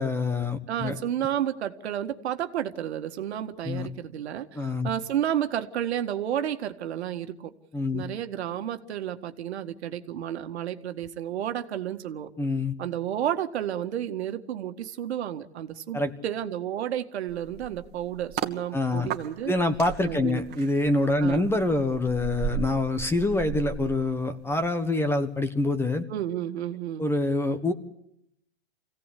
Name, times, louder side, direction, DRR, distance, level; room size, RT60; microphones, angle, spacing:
voice 1, 0.0-1.0 3.6-3.9 4.6-4.9 7.7-8.0 12.4-12.7 15.9-16.1 18.7-19.1 19.4-26.0 27.0-27.7, left 2 dB, 5° left, 10 dB, 1.3 m, -26 dB
voice 2, 0.7-7.5 7.9-12.3 12.8-19.5 20.1-20.4 21.2-21.5 26.1-27.1, right 10 dB, 75° right, 7 dB, 1.9 m, -31 dB
sound 1, 17.3-18.6 19.1-24.7 25.0-25.3, right 8 dB, 30° right, 2.0 m, -36 dB
26.0 x 17.0 x 8.5 m, 0.79 s
hypercardioid pair, 135°, 33 cm